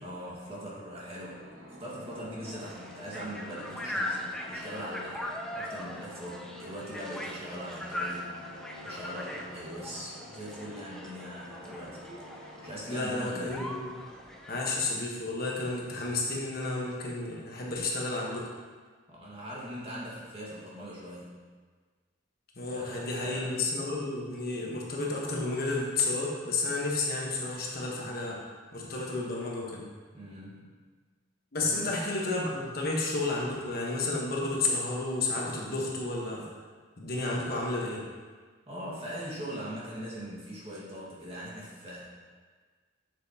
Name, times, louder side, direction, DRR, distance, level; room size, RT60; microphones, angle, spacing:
voice 1, 0.0-1.4 1.8-12.0 12.6-13.6 19.1-21.4 22.7-23.5 30.1-30.7 31.6-31.9 37.3-37.4 38.7-42.0, equal, 30° right, -6 dB, 1.7 m, -41 dB
sound 1, 1.2-15.9, left 1 dB, 45° right, 1.3 m, -49 dB
sound 2, 2.4-15.0, left 1 dB, 5° left, 0.5 m, -40 dB
voice 2, 12.9-13.9 14.5-18.5 22.6-28.4 28.7-29.9 31.5-36.4 37.0-38.0, left 2 dB, 50° left, -3 dB, 1.2 m, -31 dB
7.6 x 7.4 x 2.9 m, 1.5 s
head